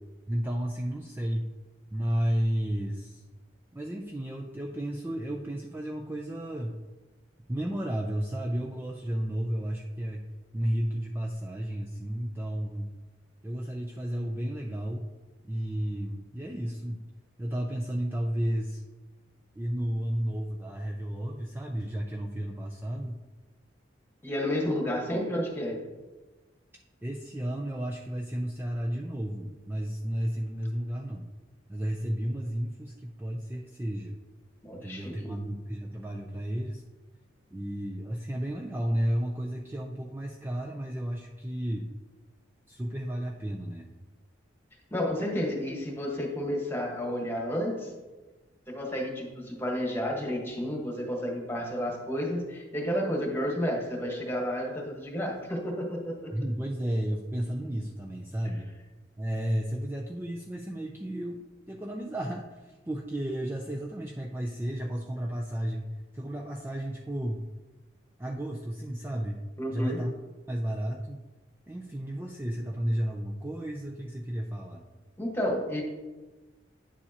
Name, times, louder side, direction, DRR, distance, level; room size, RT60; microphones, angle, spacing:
voice 1, 0.3-1.5 1.9-3.2 3.7-6.8 7.5-10.2 10.5-12.9 13.4-15.1 15.5-17.1 17.4-18.8 19.6-23.1 27.0-31.3 31.7-34.2 34.7-36.8 37.5-41.9 42.7-43.9 56.3-58.7 59.2-61.4 61.7-67.4 68.2-69.4 69.7-70.1 70.5-71.2 71.7-74.9, equal, 10° right, 0 dB, 0.4 m, -32 dB
voice 2, 24.2-25.9 34.6-35.4 44.9-47.9 48.7-56.3 69.6-70.0 75.2-75.8, equal, 10° left, 0 dB, 1.4 m, -31 dB
9.8 x 7.3 x 2.9 m, 1.2 s
head